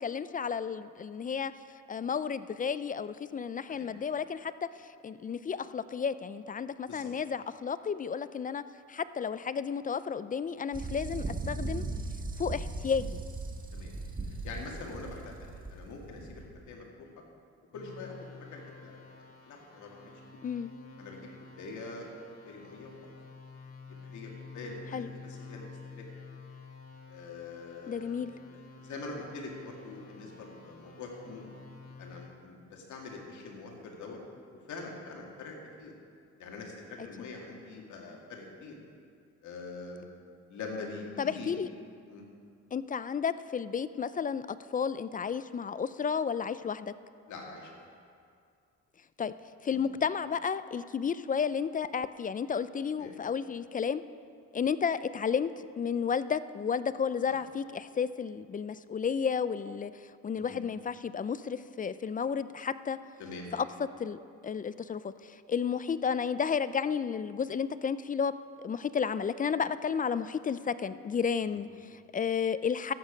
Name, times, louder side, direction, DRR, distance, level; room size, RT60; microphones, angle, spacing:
voice 1, 0.0-1.5 1.9-4.5 5.0-8.6 8.9-11.8 12.4-13.2 20.4-20.7 24.9-25.1 27.9-28.3 41.2-41.7 42.7-46.9 49.2-49.3 49.6-54.0 54.5-55.5 55.8-63.0 63.5-63.7 64.0-64.2 64.4-68.3 68.6-72.9, left 6 dB, 30° left, 14 dB, 0.4 m, -32 dB
sound 1, 10.7-16.6, right 3 dB, 30° right, 1.5 m, -38 dB
voice 2, 14.3-17.1 17.7-19.0 19.5-20.1 21.0-21.3 21.6-22.1 22.4-22.9 23.9-26.0 27.1-28.2 28.5-31.5 32.0-34.2 34.7-35.9 36.4-38.8 39.4-40.0 40.5-41.5 42.1-42.2 47.3-47.9 49.7-49.8 53.0-53.1 60.4-60.6 63.2-63.5 71.5-71.6, left 3 dB, 75° left, 0 dB, 2.2 m, -44 dB
sound 2, 17.7-32.3, left 4 dB, 50° left, 2.1 m, -50 dB
13.5 x 8.7 x 5.1 m, 2.3 s
cardioid pair, 90°, 30 cm